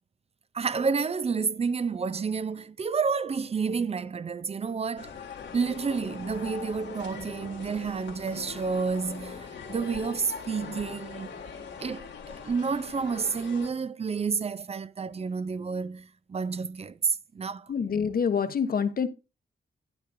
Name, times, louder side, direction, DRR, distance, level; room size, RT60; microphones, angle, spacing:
voice 1, 0.5-5.2 5.5-11.3 11.8-17.7, right 5 dB, 35° right, 0.5 m, -30 dB
sound 1, 5.0-13.7, left 6 dB, 80° left, 1.7 m, -41 dB
voice 2, 17.7-19.1, left 6 dB, 50° left, 0.9 m, -26 dB
12.5 x 8.3 x 2.6 m
wide cardioid pair, 115°, 19 cm